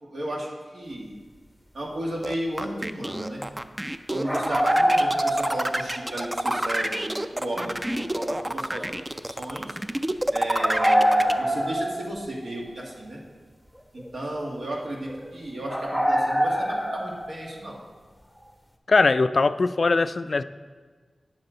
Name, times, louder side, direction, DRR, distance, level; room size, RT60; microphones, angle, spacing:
voice 1, 0.0-1.2 1.7-3.5 4.1-8.9 9.2-9.8 10.3-13.2 13.9-17.8, right 1 dB, 75° right, -2 dB, 1.7 m, -34 dB
sound 1, 2.2-11.3, right 1 dB, 20° right, 0.4 m, -28 dB
sound 2, 4.2-6.3 6.5-6.6 10.5-12.5 12.9-13.0 14.0-14.1 14.5-14.6 15.1-15.3 15.7-17.6, equal, 5° right, 0.8 m, -24 dB
voice 2, 18.9-20.4, left 3 dB, 60° left, 13 dB, 0.3 m, -21 dB
9.6 x 7.2 x 3.9 m, 1.5 s
wide cardioid pair, 65°, 0 cm